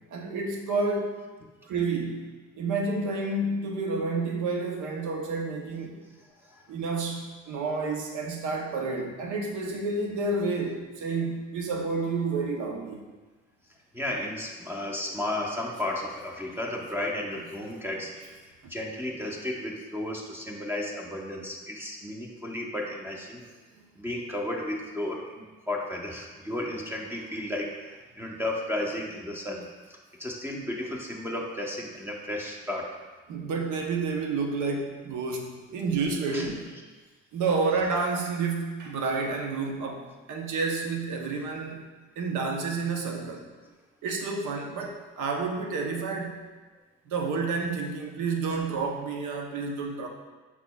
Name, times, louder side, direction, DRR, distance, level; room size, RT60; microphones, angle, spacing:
voice 1, 0.1-1.2 1.6-6.0 6.7-13.0 23.7-23.9 33.3-36.7 37.3-41.8 42.2-43.5 44.0-46.4 47.1-50.1, right 3 dB, 80° right, 2 dB, 0.8 m, -30 dB
voice 2, 13.9-18.4 18.7-23.4 24.0-33.0 36.3-36.5, left 1 dB, 5° right, -1 dB, 0.7 m, -33 dB
5.9 x 4.0 x 2.2 m, 1.3 s
cardioid pair, 90°, 30 cm